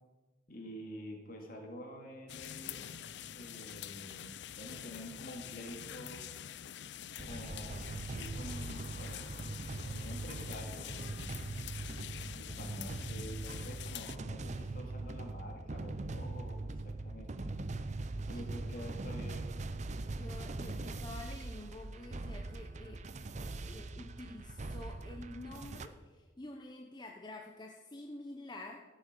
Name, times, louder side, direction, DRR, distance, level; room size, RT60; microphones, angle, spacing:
voice 1, 0.5-3.0 3.3-4.3 4.6-6.3 7.0-9.3 9.8-11.0 12.3-17.5 18.3-19.6, equal, 50° left, 2 dB, 2.5 m, -48 dB
sound 1, 2.3-14.2, left 10 dB, 65° left, 0.5 m, -46 dB
sound 2, 7.2-25.9, right 2 dB, 40° right, 0.6 m, -41 dB
voice 2, 20.1-23.0 23.4-28.8, left 2 dB, 25° left, 1 dB, 0.9 m, -48 dB
14.5 x 8.3 x 6.8 m, 1.3 s
head